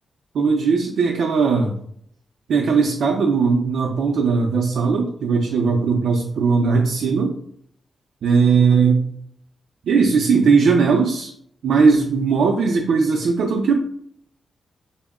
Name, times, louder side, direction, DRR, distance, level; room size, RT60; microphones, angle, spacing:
voice 1, 0.3-1.8 2.5-7.4 8.2-9.1 9.9-11.3 11.6-13.8, right 5 dB, 85° right, 1 dB, 0.5 m, -18 dB
4.3 x 2.0 x 3.5 m, 0.65 s
wide cardioid pair, 135°, 0 cm